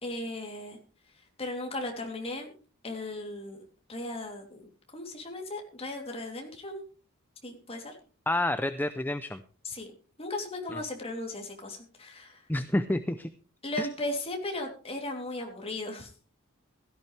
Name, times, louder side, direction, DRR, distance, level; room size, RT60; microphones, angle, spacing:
voice 1, 0.0-0.8 1.4-2.5 2.8-3.6 3.9-6.8 7.4-8.0 9.6-9.9 10.2-12.4 13.6-16.1, left 2 dB, 30° left, 2 dB, 3.1 m, -36 dB
voice 2, 8.3-9.4 10.7-10.8 12.5-13.3 13.8-13.9, left 1 dB, 10° left, 11 dB, 0.5 m, -29 dB
16.5 x 13.5 x 3.3 m, 0.38 s
head